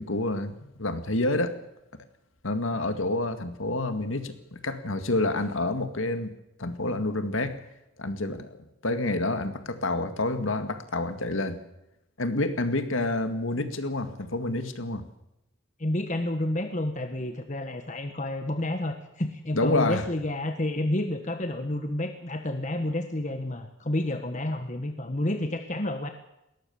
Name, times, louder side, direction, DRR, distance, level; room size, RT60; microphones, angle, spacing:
voice 1, 0.0-1.6 2.4-6.3 6.6-7.6 8.0-8.6 8.8-11.6 12.2-15.0 19.5-20.0, left 2 dB, 85° left, 9 dB, 2.1 m, -28 dB
voice 2, 15.8-26.1, left 1 dB, 40° left, 6 dB, 1.4 m, -30 dB
20.5 x 18.0 x 7.2 m, 0.88 s
head